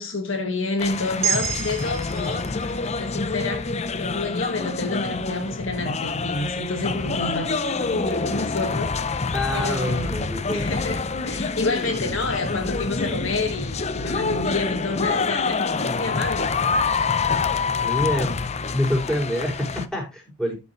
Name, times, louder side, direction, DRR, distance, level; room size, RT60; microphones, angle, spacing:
voice 1, 0.0-10.2 10.4-16.5, left 2 dB, 60° left, 1.7 m, -29 dB
sound 1, 0.8-19.9, left 4 dB, 30° left, 0.6 m, -27 dB
sound 2, 1.2-5.5, right 8 dB, 30° right, 2.9 m, -32 dB
voice 2, 9.3-10.7 17.8-18.4 18.7-20.6, equal, 5° left, 5.6 m, -26 dB
13.5 x 7.0 x 3.1 m
head